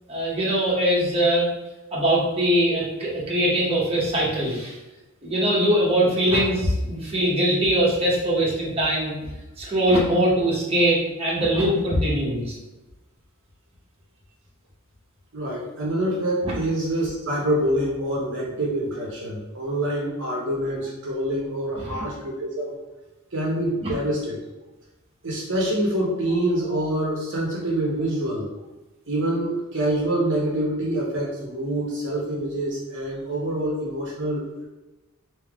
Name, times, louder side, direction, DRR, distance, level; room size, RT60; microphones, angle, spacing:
voice 1, 0.1-1.5 1.9-4.8 5.2-9.2 9.6-12.5 16.4-16.5 21.7-22.1 23.8-23.9, right 1 dB, 25° right, -6 dB, 1.0 m, -22 dB
voice 2, 15.3-22.8 23.3-24.4 25.2-28.5 29.1-34.7, right 1 dB, 55° right, -4 dB, 0.9 m, -26 dB
3.5 x 2.8 x 3.5 m, 1.1 s
head